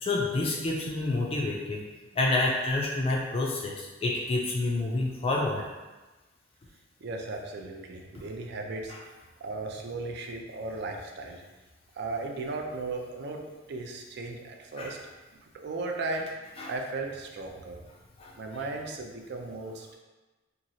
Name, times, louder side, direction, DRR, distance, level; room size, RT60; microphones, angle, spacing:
voice 1, 0.0-1.8 2.2-5.6 14.8-14.9 16.6-16.7 18.2-18.3, left 2 dB, 30° left, -2 dB, 0.3 m, -28 dB
voice 2, 7.0-8.9 9.4-11.4 11.9-15.0 15.4-16.3 16.7-17.8 18.4-20.0, right 3 dB, 60° right, 2 dB, 0.4 m, -36 dB
2.9 x 2.4 x 2.6 m, 1.2 s
head